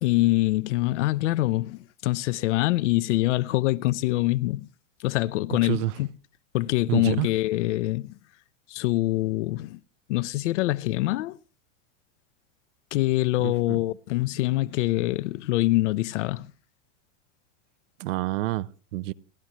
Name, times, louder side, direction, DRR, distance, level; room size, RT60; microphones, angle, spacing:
voice 1, 0.0-4.7 5.0-6.1 6.5-8.2 8.7-9.8 10.1-11.4 12.9-16.5, left 18 dB, 65° left, 0.7 m, -25 dB
voice 2, 6.9-7.3 13.4-13.8 18.0-19.1, right 16 dB, 75° right, 0.7 m, -28 dB
30.0 x 11.5 x 3.0 m
supercardioid pair, 165°, 38 cm